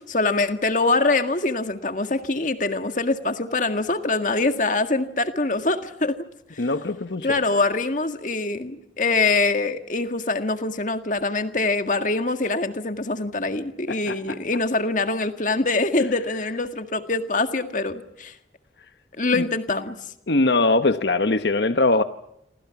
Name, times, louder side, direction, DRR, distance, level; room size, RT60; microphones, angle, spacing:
voice 1, 0.0-6.2 6.5-6.6 7.2-18.4 19.2-20.0, left 3 dB, 45° left, 8 dB, 1.8 m, -24 dB
voice 2, 6.6-7.6 13.9-14.4 19.4-19.5 20.3-22.0, left 2 dB, 70° left, 9 dB, 1.1 m, -22 dB
28.5 x 26.0 x 5.9 m, 0.80 s
head